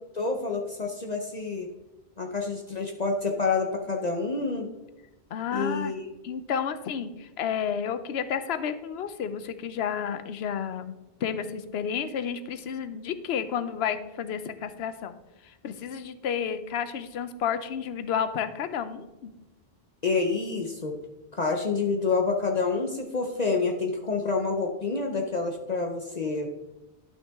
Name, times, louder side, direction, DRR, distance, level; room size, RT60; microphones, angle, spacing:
voice 1, 0.1-1.7 2.2-4.7 5.5-6.0 20.0-21.0 21.3-26.5, left 4 dB, 45° left, 2 dB, 0.8 m, -28 dB
voice 2, 5.3-5.9 6.2-10.9 11.2-15.1 15.4-19.3, left 7 dB, 75° left, 11 dB, 0.9 m, -31 dB
12.0 x 5.6 x 3.5 m, 1.0 s
omnidirectional pair, 1.1 m